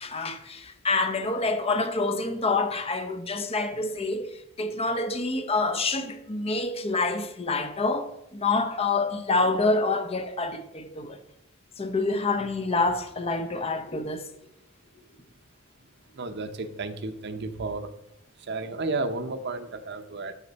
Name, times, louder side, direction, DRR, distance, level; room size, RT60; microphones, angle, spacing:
voice 1, 0.0-11.2 11.8-14.3, left 3 dB, 30° left, 0.7 m, -27 dB
voice 2, 16.2-17.9 18.4-20.3, right 3 dB, 55° right, 0.7 m, -32 dB
11.5 x 4.4 x 4.1 m
head